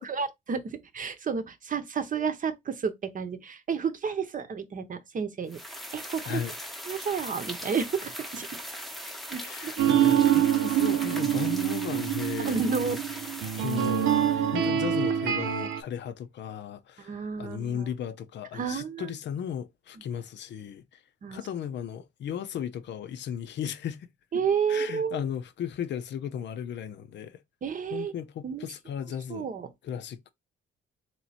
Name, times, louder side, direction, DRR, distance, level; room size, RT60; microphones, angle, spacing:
voice 1, 0.0-5.6 5.9-6.4 6.9-8.5 9.3-9.7 12.4-13.0 17.0-17.9 18.5-19.1 21.2-21.4 24.3-25.2 27.6-28.1 28.4-28.7 29.3-29.7, right 6 dB, 45° right, 0.8 m, -31 dB
sound 1, 5.5-14.5, equal, ahead, 0.8 m, -40 dB
voice 2, 9.4-12.6 13.6-21.0 21.3-24.1 24.7-27.4 27.9-29.5 29.8-30.3, left 9 dB, 65° left, 0.6 m, -36 dB
sound 2, 9.8-15.8, right 10 dB, 85° right, 0.7 m, -25 dB
3.1 x 2.9 x 4.2 m
cardioid pair, 90°, 20 cm